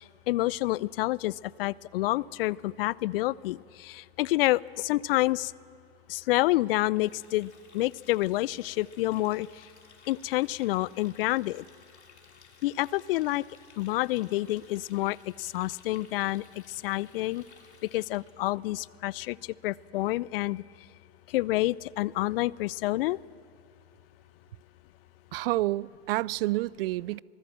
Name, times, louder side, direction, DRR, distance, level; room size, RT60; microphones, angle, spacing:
voice 1, 0.3-5.5 6.1-9.5 10.1-11.6 12.6-13.4 13.8-16.4 16.8-17.4 17.9-19.4 19.6-20.6 21.3-23.2, left 18 dB, 60° left, 0.5 m, -28 dB
Water tap faucet, 6.9-18.5, left 5 dB, 85° left, 3.0 m, -57 dB
voice 2, 25.3-27.2, right 17 dB, 60° right, 0.5 m, -29 dB
25.0 x 19.0 x 7.5 m
hypercardioid pair, 100°, 33 cm